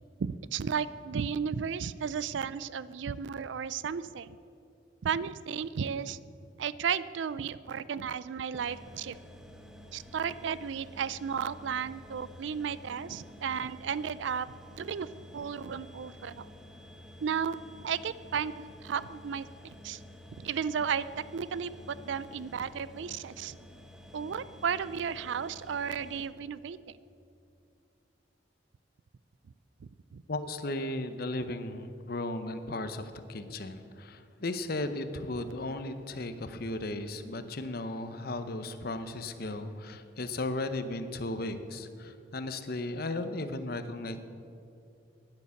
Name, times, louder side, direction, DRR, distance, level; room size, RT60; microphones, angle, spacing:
voice 1, 0.2-4.4 5.0-6.2 6.6-9.2 9.9-14.5 14.7-15.1 15.3-16.5 17.2-17.6 17.8-18.5 18.8-20.0 20.4-21.0 21.3-23.6 24.1-26.8 29.8-30.2, right 7 dB, 70° right, 17 dB, 0.4 m, -34 dB
sound 1, 8.5-26.3, left 1 dB, 5° right, 1.0 m, -50 dB
voice 2, 30.3-44.2, left 2 dB, 50° left, 10 dB, 0.7 m, -36 dB
11.0 x 9.8 x 7.0 m, 2.6 s
head